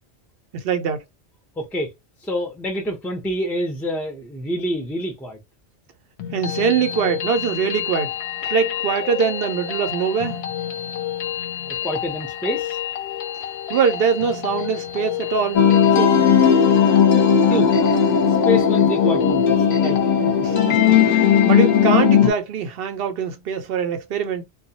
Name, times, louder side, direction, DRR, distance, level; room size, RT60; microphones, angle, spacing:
voice 1, 0.5-1.0 6.3-8.1 8.4-10.4 13.7-15.6 15.9-16.2 20.4-24.4, right 7 dB, 60° right, 0.7 m, -23 dB
voice 2, 1.6-1.9 2.2-5.4 11.6-12.8 17.5-17.7 18.4-20.5, left 1 dB, ahead, 0.5 m, -27 dB
sound 1, 6.2-22.2, left 11 dB, 70° left, 0.8 m, -29 dB
sound 2, 15.5-22.3, left 7 dB, 45° left, 0.8 m, -16 dB
2.3 x 2.1 x 2.7 m
omnidirectional pair, 1.2 m